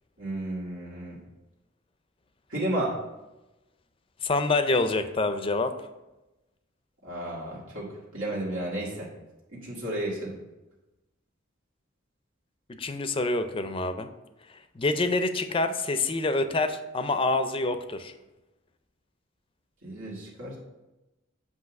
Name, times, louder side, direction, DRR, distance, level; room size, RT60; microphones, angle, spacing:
voice 1, 0.2-1.2 2.5-2.9 7.0-9.1 9.5-10.3 19.8-20.6, right 1 dB, 90° right, -5 dB, 1.9 m, -32 dB
voice 2, 4.2-5.7 12.8-14.1 14.8-18.1, left 2 dB, 25° left, 9 dB, 0.4 m, -26 dB
8.1 x 2.8 x 5.9 m, 1.0 s
head